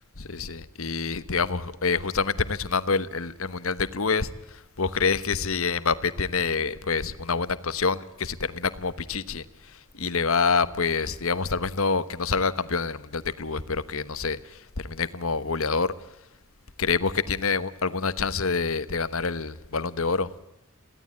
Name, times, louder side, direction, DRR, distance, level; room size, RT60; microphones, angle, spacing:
voice 1, 0.2-15.9 16.8-20.3, left 4 dB, 70° left, 14 dB, 1.1 m, -27 dB
22.5 x 16.5 x 8.5 m, 0.92 s
head